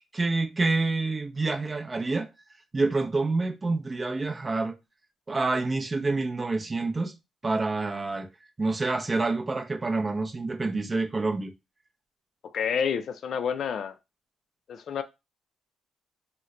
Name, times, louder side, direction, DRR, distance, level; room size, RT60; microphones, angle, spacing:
voice 1, 0.1-2.3 2.7-4.8 5.3-7.2 7.4-8.3 8.6-11.5, right 3 dB, 25° right, 0.6 m, -27 dB
voice 2, 12.5-14.0 14.7-15.0, left 7 dB, 60° left, 0.4 m, -29 dB
3.0 x 2.1 x 3.7 m
cardioid pair, 90°, 0 cm